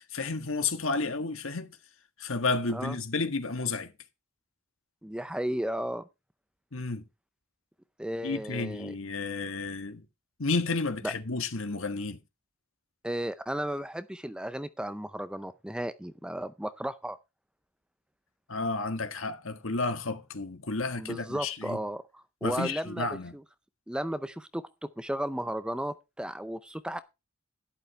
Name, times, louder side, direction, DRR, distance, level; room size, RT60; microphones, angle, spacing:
voice 1, 0.0-1.7 2.2-3.9 6.7-7.0 8.2-10.0 10.4-12.2 18.5-21.8 22.4-23.4, left 3 dB, 65° left, 1.5 m, -31 dB
voice 2, 5.0-6.0 8.0-9.0 11.0-11.1 13.0-17.2 21.0-23.1 23.9-27.0, right 1 dB, 5° right, 0.5 m, -34 dB
12.0 x 11.0 x 3.3 m
head